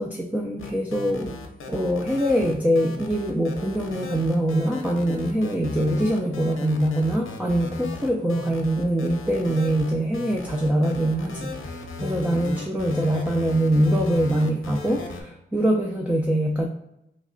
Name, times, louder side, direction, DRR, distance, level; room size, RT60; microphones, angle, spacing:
voice 1, 0.0-1.3 1.7-16.7, right 1 dB, 5° right, -1 dB, 0.3 m, -23 dB
sound 1, 0.6-15.2, left 3 dB, 80° left, 0.7 m, -35 dB
3.1 x 3.0 x 3.7 m, 0.83 s
wide cardioid pair, 165°, 21 cm